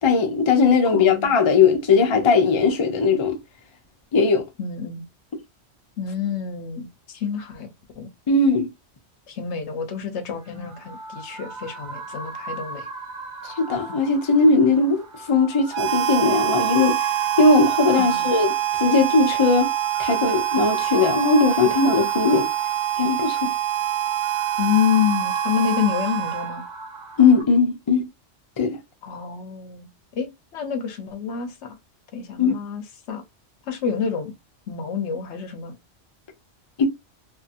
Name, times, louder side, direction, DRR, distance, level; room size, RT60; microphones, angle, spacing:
voice 1, 0.0-3.3 4.1-4.4 8.3-8.7 13.4-15.0 15.3-17.0 17.4-18.5 18.8-19.7 20.0-22.5 23.0-23.5 27.2-28.1 28.6-28.8 32.4-32.5 36.8-36.9, left 4 dB, 35° left, 0.5 m, -18 dB
voice 2, 0.8-1.3 4.6-5.0 6.0-7.7 8.0-8.1 9.3-12.9 13.9-14.0 18.0-18.3 24.6-26.6 29.0-29.9 30.2-31.8 32.1-33.2 33.7-34.3 34.7-35.7, left 7 dB, 70° left, 0.9 m, -28 dB
sound 1, 10.4-27.4, right 3 dB, 70° right, 1.4 m, -37 dB
Harmonica, 15.7-26.8, right 12 dB, 85° right, 0.9 m, -25 dB
2.7 x 2.6 x 2.5 m
omnidirectional pair, 1.2 m